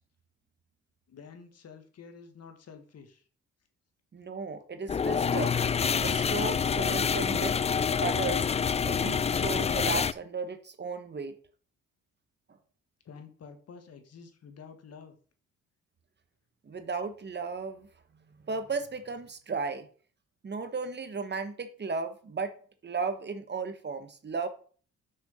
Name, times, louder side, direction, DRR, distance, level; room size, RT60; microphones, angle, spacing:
voice 1, 1.1-3.3 13.0-15.2, left 6 dB, 55° left, 7 dB, 1.6 m, -49 dB
voice 2, 4.1-5.6 6.0-7.5 8.0-8.5 8.8-11.3 16.6-17.9 18.5-19.9 20.4-22.5 22.8-24.5, right 4 dB, 35° right, 9 dB, 1.3 m, -35 dB
sound 1, 4.9-10.1, left 6 dB, 20° left, 0.3 m, -27 dB
6.4 x 6.0 x 5.6 m, 0.43 s
cardioid pair, 90°, 30 cm